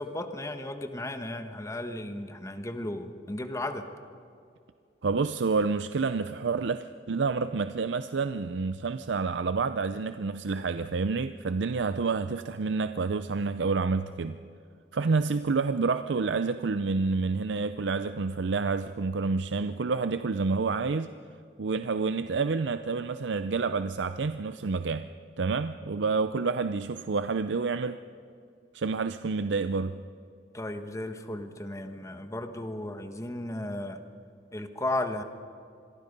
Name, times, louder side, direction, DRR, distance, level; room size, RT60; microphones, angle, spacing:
voice 1, 0.0-3.9 30.5-34.0 34.5-35.2, left 1 dB, 15° left, 7 dB, 1.3 m, -35 dB
voice 2, 5.0-14.4 14.9-21.1 21.6-25.1 25.4-28.0 28.7-30.0, right 4 dB, 80° right, 11 dB, 0.6 m, -28 dB
27.0 x 22.0 x 5.4 m, 2.4 s
head